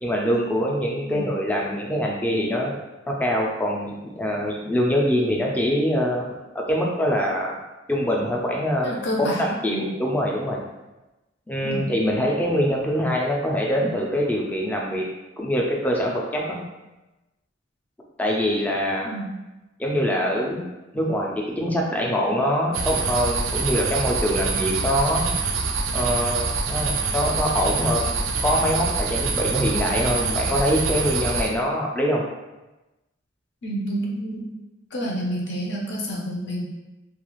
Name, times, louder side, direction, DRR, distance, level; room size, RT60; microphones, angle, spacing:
voice 1, 0.0-2.7 3.1-6.3 6.5-7.6 7.9-8.9 9.2-10.6 11.5-15.1 15.4-16.6 18.2-19.1 19.8-20.6 20.9-25.3 25.9-28.2 28.4-32.2, equal, 10° left, -2 dB, 0.4 m, -24 dB
voice 2, 8.8-9.9 11.6-11.9 19.0-19.3 33.6-34.5 34.9-36.6, equal, 60° left, -2 dB, 0.6 m, -29 dB
sound 1, 22.7-31.5, right 4 dB, 90° right, 0.4 m, -25 dB
2.3 x 2.3 x 3.0 m, 1.0 s
head